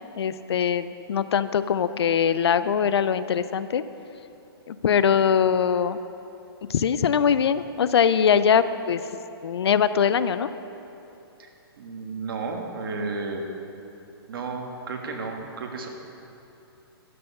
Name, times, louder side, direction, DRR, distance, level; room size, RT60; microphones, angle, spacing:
voice 1, 0.2-3.8 4.7-6.0 6.7-9.0 9.4-10.5, left 7 dB, 80° left, 14 dB, 0.5 m, -22 dB
voice 2, 11.8-13.5 14.3-15.9, right 3 dB, 60° right, 2 dB, 1.5 m, -32 dB
11.5 x 6.9 x 5.4 m, 2.9 s
hypercardioid pair, 160°, 13 cm